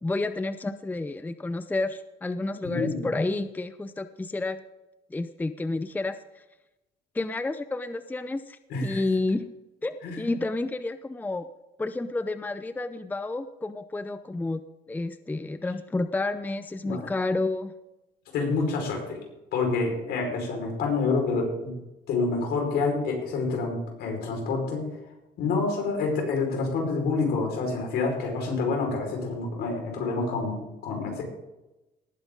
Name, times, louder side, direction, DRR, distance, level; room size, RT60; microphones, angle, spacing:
voice 1, 0.0-4.6 5.1-6.4 7.1-9.5 9.8-11.5 11.8-14.6 14.9-17.7, left 2 dB, 10° left, 11 dB, 0.6 m, -30 dB
voice 2, 2.6-3.1 8.7-9.0 10.0-10.3 16.8-17.0 18.3-19.2 19.5-21.7 22.1-24.9 25.4-31.2, left 3 dB, 75° left, 1 dB, 5.1 m, -28 dB
19.0 x 8.9 x 3.9 m, 0.99 s
cardioid pair, 110°, 17 cm